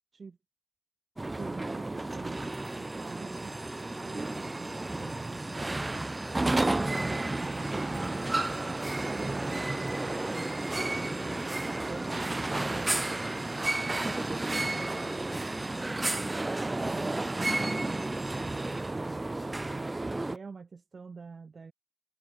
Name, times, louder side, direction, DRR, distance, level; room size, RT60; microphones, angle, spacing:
sound 1, 1.2-20.4, right 2 dB, 15° right, 0.5 m, -32 dB
voice 1, 1.3-2.4 2.8-5.7 6.6-10.7 10.9-16.1 16.8-20.0 20.3-21.7, right 5 dB, 35° right, 1.5 m, -46 dB
cardioid pair, 125°, 0 cm